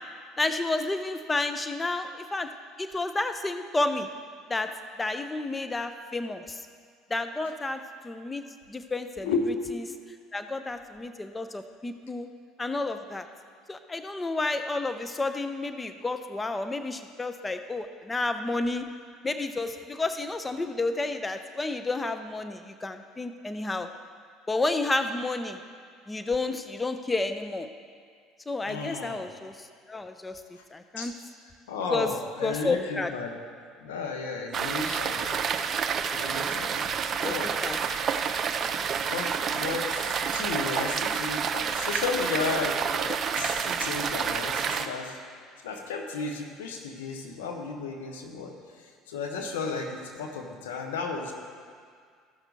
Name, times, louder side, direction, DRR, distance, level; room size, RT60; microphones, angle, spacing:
voice 1, 0.4-2.5 2.8-4.1 4.5-4.7 5.0-6.6 7.1-8.4 8.7-9.3 10.3-12.3 12.6-13.2 13.7-18.9 19.2-23.9 24.5-25.6 26.1-27.7 28.5-30.4 30.7-31.1 31.9-32.1 32.4-33.1 37.2-37.8 41.8-41.9 43.1-43.2 43.5-43.7, left 2 dB, 20° left, 9 dB, 0.6 m, -31 dB
voice 2, 9.2-9.5 28.7-29.2 31.0-31.1 31.7-33.3 33.8-35.4 36.1-36.9 37.2-37.5 37.9-38.1 39.1-45.2 45.6-48.5 49.1-51.3, left 4 dB, 80° left, 3 dB, 1.1 m, -33 dB
sound 1, 34.5-44.9, right 7 dB, 45° right, 0.6 m, -29 dB
14.5 x 6.1 x 4.0 m, 2.1 s
hypercardioid pair, 70°, 0 cm